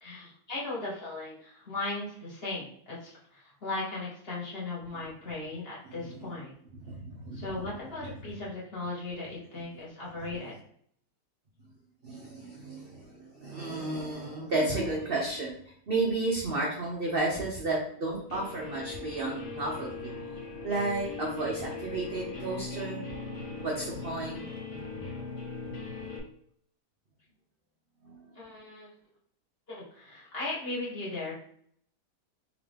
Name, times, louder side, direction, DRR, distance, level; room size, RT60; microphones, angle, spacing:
voice 1, 0.0-6.5 7.3-10.5 28.3-28.9 29.7-31.3, left 2 dB, 40° left, -7 dB, 1.6 m, -37 dB
voice 2, 5.8-6.2 6.8-7.5 12.0-20.1 20.6-23.1 23.6-25.1 28.0-28.3, right 2 dB, 55° right, -3 dB, 0.6 m, -33 dB
Guitar, 18.3-26.2, left 4 dB, 80° left, 1.5 m, -39 dB
3.7 x 2.9 x 3.3 m, 0.64 s
omnidirectional pair, 1.8 m